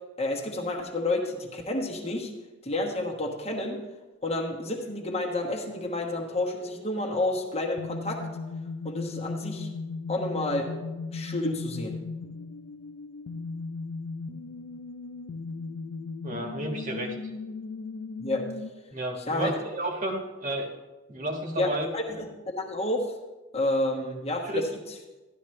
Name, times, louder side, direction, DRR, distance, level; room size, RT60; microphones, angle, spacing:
voice 1, 0.2-2.3 2.6-3.8 4.2-8.2 8.8-9.7 10.1-10.7 11.1-12.0 18.2-18.4 19.2-19.5 21.5-23.1 23.5-25.0, left 2 dB, 30° left, 0 dB, 1.2 m, -30 dB
sound 1, 4.8-18.7, left 4 dB, 75° left, 0.4 m, -38 dB
voice 2, 16.2-17.1 18.9-20.7 21.1-21.9 24.5-24.6, right 1 dB, 35° right, 2 dB, 1.4 m, -31 dB
13.0 x 11.5 x 3.2 m, 1.1 s
head